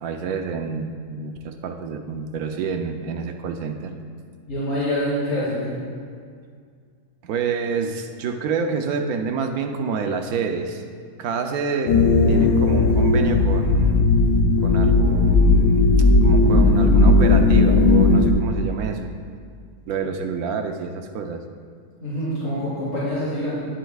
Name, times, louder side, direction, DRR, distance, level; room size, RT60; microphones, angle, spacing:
voice 1, 0.0-3.9 7.2-10.8 11.2-12.0 12.3-14.1 14.6-15.9 16.2-19.1 19.9-21.4, right 5 dB, 70° right, 5 dB, 1.1 m, -28 dB
voice 2, 4.4-5.7 22.0-23.6, equal, 50° left, -11 dB, 3.0 m, -25 dB
sound 1, 11.9-18.3, left 3 dB, 70° left, 1.2 m, -16 dB
16.5 x 8.0 x 2.4 m, 2.1 s
omnidirectional pair, 1.7 m